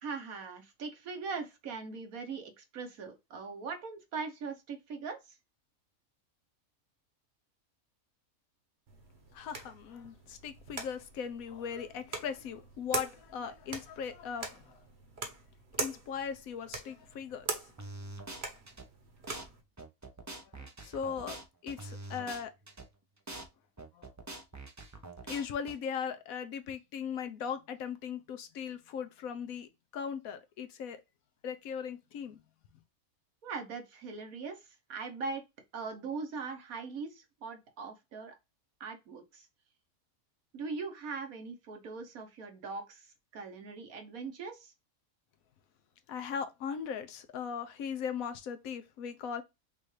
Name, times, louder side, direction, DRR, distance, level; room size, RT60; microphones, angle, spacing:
voice 1, 0.0-5.4 33.4-35.4 35.7-38.4 38.8-39.5 40.5-44.7, right 4 dB, 75° right, 1.4 m, -41 dB
sound 1, 8.9-19.6, right 3 dB, 50° right, 1.2 m, -43 dB
voice 2, 9.3-14.8 15.8-17.6 20.5-22.5 23.9-24.1 25.3-31.0 31.4-32.4 46.1-49.4, left 7 dB, 70° left, 1.1 m, -39 dB
sound 2, 17.8-18.9 19.3-19.5 19.8-22.9 23.3-23.5 23.8-25.8, right 2 dB, 25° right, 0.3 m, -44 dB
5.4 x 2.5 x 3.2 m
omnidirectional pair, 1.5 m